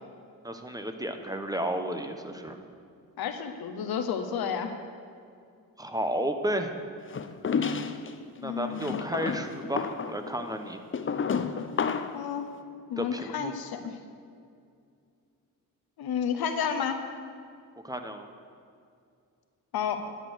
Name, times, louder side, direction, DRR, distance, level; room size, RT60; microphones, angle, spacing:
voice 1, 0.4-2.6 5.8-6.7 8.4-10.8 13.0-13.5 17.8-18.3, right 1 dB, 10° right, 6 dB, 0.9 m, -32 dB
voice 2, 3.2-4.7 8.4-8.9 12.1-12.5 12.9-14.0 16.0-17.0 19.7-20.0, left 7 dB, 85° left, 7 dB, 0.9 m, -31 dB
sound 1, 7.1-8.1 8.8-12.2, left 6 dB, 35° left, 0.6 m, -31 dB
10.5 x 6.8 x 6.2 m, 2.4 s
cardioid pair, 70°, 36 cm